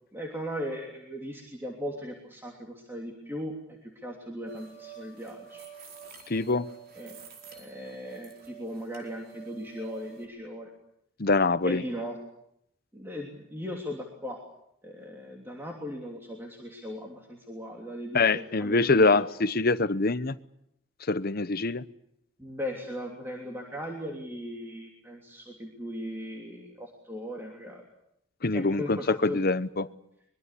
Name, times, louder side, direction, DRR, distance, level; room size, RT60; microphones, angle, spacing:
voice 1, 0.1-5.7 7.0-7.2 7.6-10.7 11.6-12.2 12.9-14.4 14.8-19.3 22.4-27.8 28.5-29.4, equal, 10° right, 0 dB, 3.0 m, -38 dB
sound 1, 4.5-10.3, right 8 dB, 45° right, 4.5 m, -48 dB
voice 2, 6.3-6.7 11.2-11.8 18.1-20.4 21.0-21.8 28.4-29.9, left 3 dB, 45° left, 15 dB, 0.9 m, -24 dB
24.0 x 22.5 x 8.4 m, 0.77 s
head